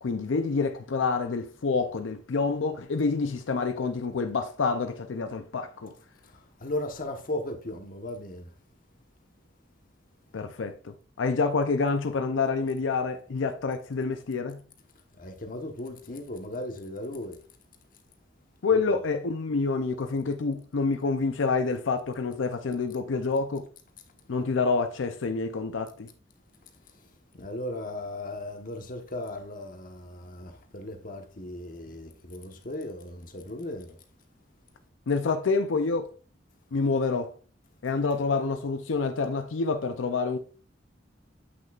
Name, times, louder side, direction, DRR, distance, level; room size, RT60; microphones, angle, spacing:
voice 1, 0.0-5.9 10.3-14.6 18.6-23.7 24.3-26.1 35.1-36.1 36.7-37.3 37.8-40.4, left 4 dB, 85° left, 0.5 m, -27 dB
voice 2, 6.2-8.5 15.2-17.4 18.7-19.0 27.3-34.0, left 1 dB, 45° left, 1.1 m, -37 dB
8.1 x 6.1 x 2.4 m
head